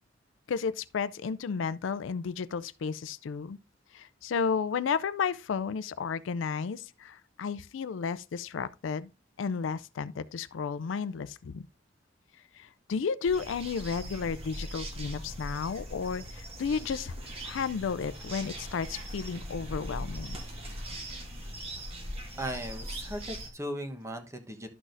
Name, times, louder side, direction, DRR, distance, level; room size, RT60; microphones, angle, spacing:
voice 1, 0.5-3.6 3.9-9.1 9.4-11.7 12.5-17.1 17.4-20.4, left 6 dB, 75° left, 0.4 m, -33 dB
sound 1, 13.2-23.5, equal, 30° right, 1.5 m, -40 dB
sound 2, 17.2-23.4, right 1 dB, 75° right, 4.5 m, -53 dB
voice 2, 22.4-24.7, equal, 15° right, 1.0 m, -37 dB
12.0 x 6.1 x 2.6 m
head